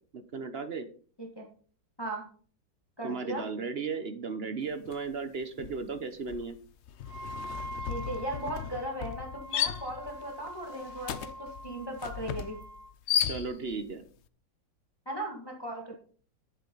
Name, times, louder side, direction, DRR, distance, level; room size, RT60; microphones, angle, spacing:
voice 1, 0.1-0.9 3.0-6.6 13.2-14.1, right 4 dB, 45° right, 10 dB, 0.8 m, -35 dB
voice 2, 3.0-3.5 7.9-12.6 15.1-16.0, right 1 dB, 15° left, 0 dB, 1.7 m, -37 dB
sound 1, 4.9-5.1 5.4-13.9, left 9 dB, 85° left, 0.6 m, -35 dB
Wind instrument woodwind instrument, 7.0-12.9, right 1 dB, 60° right, 2.0 m, -45 dB
10.5 x 8.5 x 3.9 m, 0.43 s
omnidirectional pair, 1.9 m